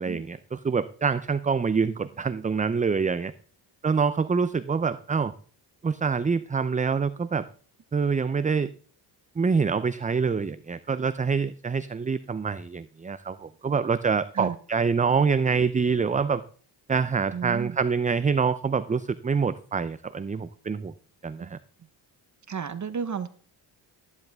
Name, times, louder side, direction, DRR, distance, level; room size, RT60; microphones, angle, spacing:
voice 1, 0.0-3.3 3.8-5.3 5.8-7.4 7.9-8.7 9.4-16.4 16.9-20.9 21.2-21.6, right 5 dB, 15° right, 14 dB, 0.5 m, -26 dB
voice 2, 17.3-17.8 21.4-21.5 22.5-23.3, right 6 dB, 35° right, 12 dB, 1.0 m, -32 dB
14.0 x 10.5 x 3.6 m, 0.42 s
cardioid pair, 80°, 48 cm